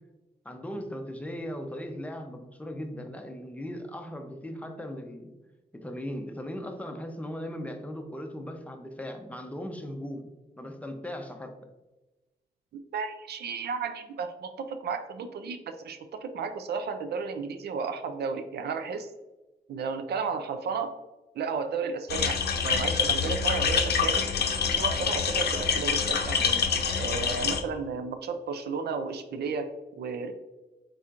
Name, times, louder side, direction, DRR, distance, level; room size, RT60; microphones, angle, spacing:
voice 1, 0.4-5.3 5.7-10.3 10.6-11.5, equal, 10° left, 4 dB, 0.6 m, -38 dB
voice 2, 12.9-19.1 19.7-20.9 21.4-24.3 24.7-26.6 26.9-30.3, right 5 dB, 85° right, 8 dB, 0.4 m, -33 dB
sound 1, 22.1-27.6, left 6 dB, 85° left, 0.6 m, -26 dB
4.7 x 4.2 x 2.4 m, 1.1 s
wide cardioid pair, 105°, 16 cm